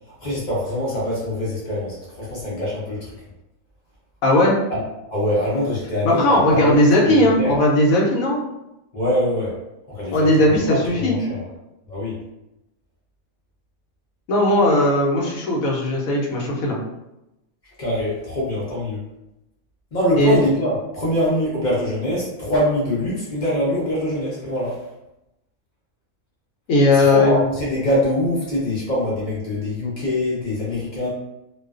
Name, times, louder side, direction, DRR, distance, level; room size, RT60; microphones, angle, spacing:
voice 1, 0.2-3.1 4.7-4.8 5.1-6.8 7.2-7.6 8.9-9.5 9.9-11.5 11.9-12.2 17.8-19.0 19.9-24.8 26.9-31.1, left 1 dB, 45° left, -6 dB, 0.6 m, -24 dB
voice 2, 4.2-4.6 6.0-8.4 10.1-11.2 14.3-16.8 20.2-20.4 26.7-27.3, left 1 dB, 75° left, -2 dB, 1.0 m, -17 dB
2.4 x 2.3 x 2.3 m, 0.91 s
omnidirectional pair, 1.5 m